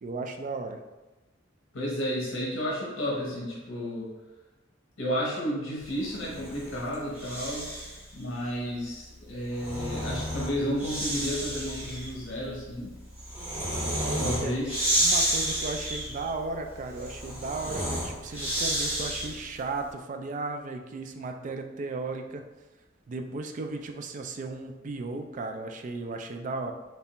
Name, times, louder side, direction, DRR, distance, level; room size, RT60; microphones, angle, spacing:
voice 1, 0.0-0.8 14.1-14.6 15.0-22.5 23.1-26.7, right 3 dB, 40° right, 5 dB, 0.3 m, -35 dB
voice 2, 1.7-4.1 5.0-7.7 8.1-12.9 14.2-14.7, equal, 70° left, -4 dB, 0.8 m, -32 dB
Breathing, 6.1-8.0 9.3-19.5, right 1 dB, 10° right, 1.1 m, -31 dB
3.3 x 3.3 x 2.9 m, 1.1 s
head